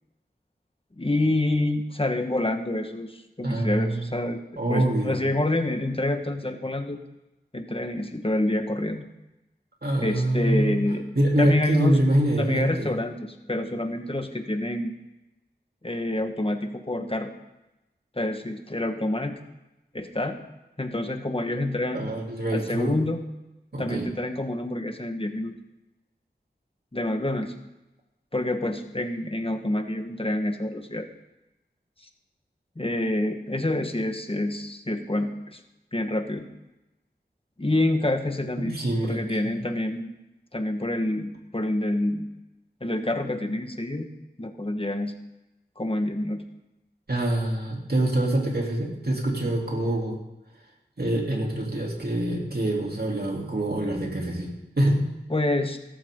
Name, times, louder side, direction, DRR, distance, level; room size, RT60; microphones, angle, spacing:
voice 1, 1.0-4.4 4.7-7.0 7.5-9.0 10.0-11.0 11.4-12.0 12.4-14.9 15.8-17.3 18.2-19.3 19.9-20.4 20.8-22.1 22.5-23.2 23.8-25.5 26.9-27.5 28.3-31.1 32.7-35.6 35.9-36.4 37.6-40.1 40.5-42.3 42.8-44.1 44.4-45.1 45.8-46.4 55.3-55.8, left 1 dB, 30° left, 5 dB, 1.5 m, -27 dB
voice 2, 3.4-4.1 4.6-5.2 9.8-10.8 11.1-12.9 21.9-22.9 23.7-24.1 38.6-39.6 47.1-50.2 51.0-54.5 54.8-55.1, right 1 dB, 60° right, -1 dB, 3.3 m, -25 dB
16.5 x 13.5 x 3.9 m, 0.97 s
wide cardioid pair, 50°, 18 cm